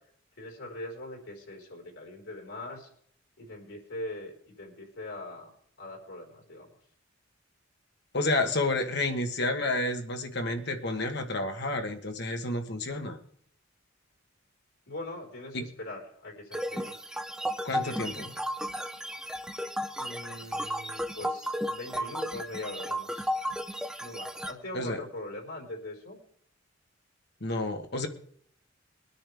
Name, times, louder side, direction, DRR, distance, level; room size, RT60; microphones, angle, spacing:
voice 1, 0.4-2.9 3.4-5.5 5.8-6.7 12.9-13.1 14.9-16.9 20.0-23.3 24.0-26.2, left 1 dB, 75° left, -3 dB, 4.6 m, -41 dB
voice 2, 8.1-13.2 15.5-15.6 17.6-18.3 24.7-25.0 27.4-28.1, left 2 dB, 55° left, 5 dB, 1.5 m, -30 dB
sound 1, 16.5-24.5, equal, 5° right, 0.7 m, -34 dB
21.5 x 9.9 x 3.5 m, 0.62 s
head